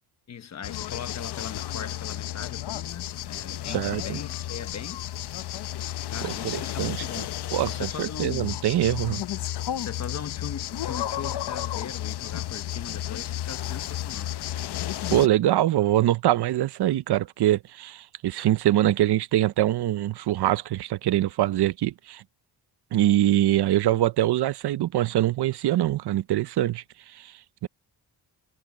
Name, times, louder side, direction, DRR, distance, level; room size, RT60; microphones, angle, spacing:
voice 1, 0.3-5.0 5.8-8.6 9.8-14.3, left 7 dB, 45° left, 1.1 m, -39 dB
sound 1, 0.6-15.3, left 12 dB, 85° left, 0.8 m, -32 dB
voice 2, 3.7-4.2 6.2-7.0 7.5-9.2 15.1-22.2 22.9-26.8 27.1-27.3 27.6-27.7, right 13 dB, 80° right, 0.7 m, -24 dB
wide cardioid pair, 175°, 39 cm